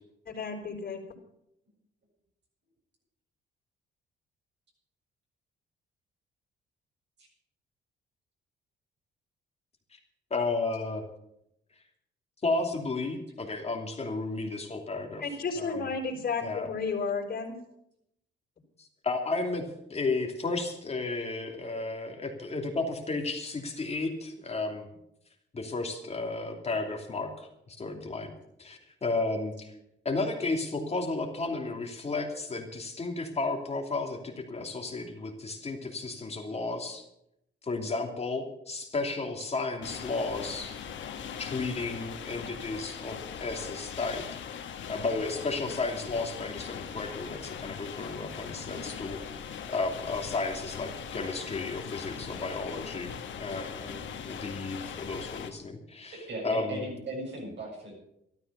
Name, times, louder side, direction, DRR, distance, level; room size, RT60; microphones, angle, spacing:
voice 1, 0.3-1.0 15.2-17.5, left 4 dB, 50° left, 2 dB, 4.2 m, -32 dB
voice 2, 10.3-11.0 12.4-15.2 15.6-15.9 16.4-16.7 18.8-24.9 25.5-28.3 28.6-29.7 30.0-37.0 37.6-40.8 41.4-44.4 44.9-49.2 49.7-56.8, left 3 dB, 30° left, 3 dB, 2.9 m, -33 dB
sound 1, 39.8-55.5, left 7 dB, 70° left, 1.8 m, -40 dB
voice 3, 56.1-57.9, right 1 dB, 60° right, -1 dB, 7.7 m, -37 dB
13.0 x 12.5 x 6.9 m, 0.78 s
cardioid pair, 90°, 20 cm